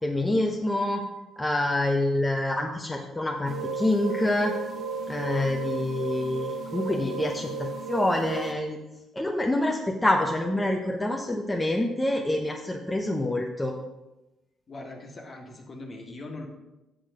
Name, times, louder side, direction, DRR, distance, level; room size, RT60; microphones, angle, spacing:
voice 1, 0.0-1.0 1.4-4.5 5.1-8.8 9.1-13.7, left 1 dB, 15° left, 0 dB, 0.9 m, -26 dB
sound 1, 3.5-8.5, right 4 dB, 55° right, 1.3 m, -34 dB
voice 2, 14.7-16.5, left 2 dB, 40° left, 2 dB, 1.8 m, -41 dB
8.2 x 6.3 x 5.0 m, 1.0 s
cardioid pair, 90°, 0 cm